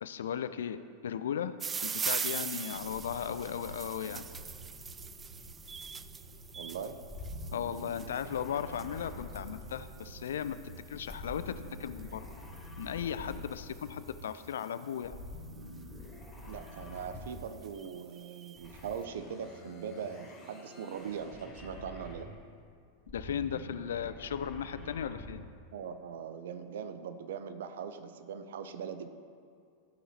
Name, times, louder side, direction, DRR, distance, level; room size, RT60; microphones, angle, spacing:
voice 1, 0.0-1.6 1.8-4.2 7.5-12.3 12.8-15.2 23.1-25.4, left 8 dB, 65° left, 13 dB, 0.4 m, -36 dB
sound 1, 1.6-14.8 15.7-16.1 16.7-16.8 17.0-17.1 17.4-18.7, right 6 dB, 20° right, 0.3 m, -42 dB
sound 2, 2.7-14.2, right 1 dB, 40° left, 2.1 m, -50 dB
voice 2, 6.6-7.1 16.5-22.3 25.7-29.1, right 7 dB, 60° right, 10 dB, 0.6 m, -41 dB
sound 3, 7.1-10.1 11.0-13.7 15.0-17.6 18.5-22.5 23.0-25.5, left 1 dB, 20° left, 2.6 m, -47 dB
15.0 x 5.5 x 4.3 m, 2.3 s
figure-of-eight pair, 90°, 0 cm